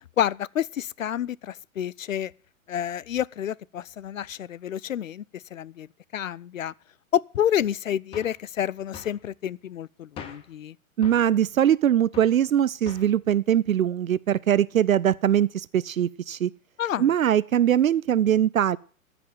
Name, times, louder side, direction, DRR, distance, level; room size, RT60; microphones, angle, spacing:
voice 1, 0.2-2.3 2.7-5.9 6.1-6.7 7.1-10.7 16.8-17.1, left 10 dB, 70° left, 0.5 m, -29 dB
sound 1, 8.1-8.4 8.9-9.2 10.2-10.5 11.0-11.3 12.1-12.4 12.9-13.2, left 7 dB, 15° left, 0.8 m, -42 dB
voice 2, 11.0-16.5 17.0-18.8, right 10 dB, 75° right, 0.5 m, -22 dB
14.0 x 6.0 x 9.1 m
figure-of-eight pair, 115°, 42 cm